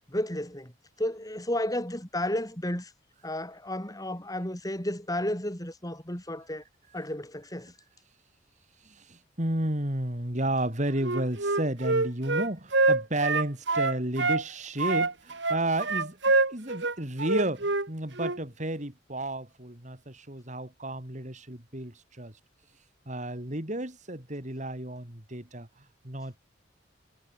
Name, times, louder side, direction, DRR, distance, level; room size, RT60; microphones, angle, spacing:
voice 1, 0.1-0.7 1.0-2.9 3.2-6.6 6.9-7.7, left 1 dB, 20° left, 5.3 m, -32 dB
voice 2, 8.8-22.4 23.1-26.4, right 1 dB, 40° right, 3.8 m, -32 dB
Wind instrument woodwind instrument, 11.0-14.4 14.8-17.9 18.2-18.4, right 3 dB, 60° right, 2.2 m, -26 dB
head